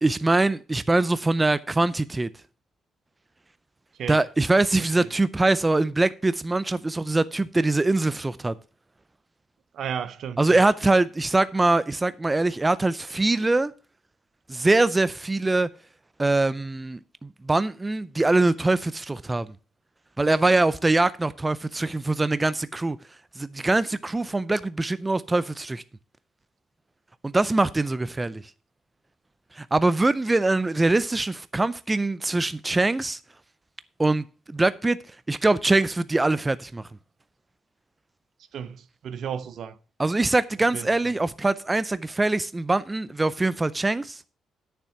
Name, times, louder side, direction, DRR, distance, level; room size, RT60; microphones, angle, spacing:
voice 1, 0.0-2.3 4.1-8.5 10.4-13.7 14.5-15.7 16.2-19.5 20.2-23.0 23.4-25.8 27.2-28.4 29.6-33.2 34.0-35.0 35.3-36.8 40.0-44.2, right 2 dB, 20° right, 0.4 m, -23 dB
voice 2, 9.7-10.6 20.5-20.6 38.5-39.8 40.7-40.9, right 8 dB, 65° right, 0.8 m, -34 dB
9.1 x 6.8 x 5.8 m
cardioid pair, 90°, 0 cm